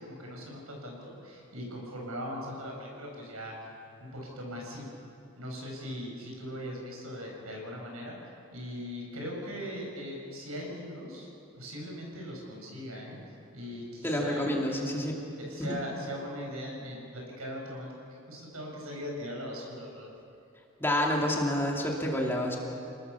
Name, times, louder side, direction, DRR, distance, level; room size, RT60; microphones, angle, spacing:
voice 1, 0.0-3.7 4.0-4.9 5.4-8.2 8.5-11.3 11.5-13.2 13.5-14.5 15.4-17.9 18.3-20.1, equal, 90° right, -1 dB, 7.4 m, -40 dB
voice 2, 14.0-15.2 15.6-15.8 20.8-22.6, left 1 dB, 10° left, -1 dB, 2.7 m, -28 dB
29.0 x 19.5 x 7.0 m, 2.7 s
head